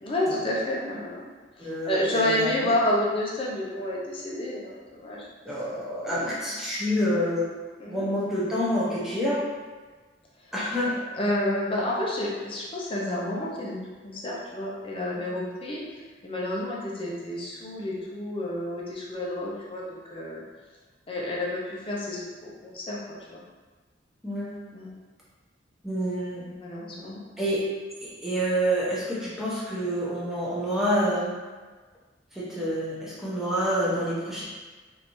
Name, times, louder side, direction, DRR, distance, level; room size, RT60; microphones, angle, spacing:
voice 1, 0.0-1.3 1.6-5.3 6.1-6.4 7.8-8.1 11.1-13.8 14.0-15.8 16.2-20.4 21.1-23.4 24.7-24.9 26.5-27.2, left 1 dB, 30° left, -4 dB, 0.6 m, -30 dB
voice 2, 1.6-2.7 5.4-7.5 7.9-9.4 10.5-10.9 24.2-24.5 25.8-26.4 27.4-27.6 28.0-31.4 32.3-34.4, equal, ahead, -8 dB, 0.8 m, -27 dB
3.3 x 2.6 x 3.0 m, 1.4 s
head